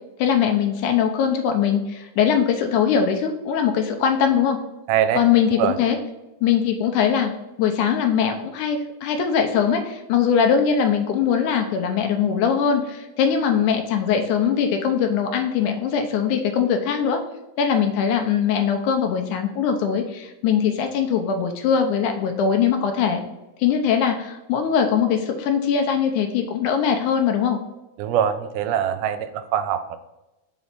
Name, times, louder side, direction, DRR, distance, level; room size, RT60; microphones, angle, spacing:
voice 1, 0.2-4.6 5.1-6.0 6.4-7.3 7.6-17.2 17.6-23.2 23.6-27.6, left 7 dB, 80° left, 5 dB, 2.1 m, -21 dB
voice 2, 4.9-5.2 5.6-5.8 28.0-30.0, right 9 dB, 80° right, 10 dB, 2.0 m, -23 dB
5.3 x 4.0 x 5.9 m, 1.0 s
omnidirectional pair, 3.7 m